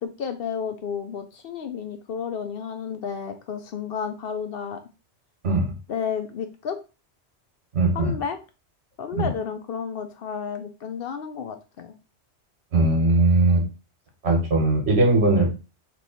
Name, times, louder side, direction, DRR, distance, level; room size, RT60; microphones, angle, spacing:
voice 1, 0.0-4.8 5.9-6.8 7.9-8.4 9.0-11.9, left 7 dB, 65° left, 8 dB, 0.7 m, -31 dB
voice 2, 7.7-8.1 12.7-13.6 14.2-15.5, right 2 dB, 65° right, 1 dB, 1.5 m, -19 dB
3.1 x 3.0 x 4.1 m, 0.30 s
omnidirectional pair, 1.2 m